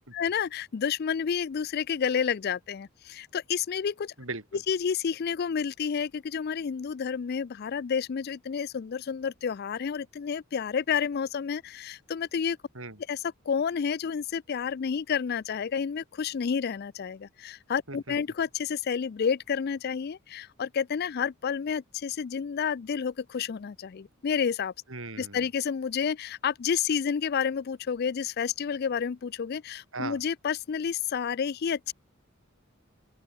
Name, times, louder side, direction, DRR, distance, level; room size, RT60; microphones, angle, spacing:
voice 1, 0.0-4.1 4.7-12.6 13.1-13.2 13.5-24.7 25.2-31.9, left 7 dB, 50° left, 0.4 m, -30 dB
voice 2, 4.2-4.6 12.7-13.0 17.9-18.2 24.9-25.5 29.9-30.2, right 3 dB, 75° right, 4.3 m, -38 dB
open air
head